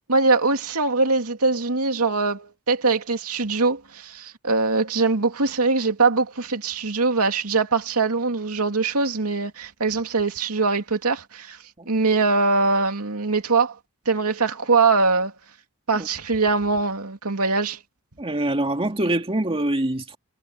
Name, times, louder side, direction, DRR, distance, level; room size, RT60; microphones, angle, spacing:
voice 1, 0.1-11.6 11.9-13.7 14.1-15.3 15.9-17.8, right 3 dB, 85° right, 2.6 m, -22 dB
voice 2, 18.2-20.2, right 1 dB, 25° right, 2.4 m, -24 dB
head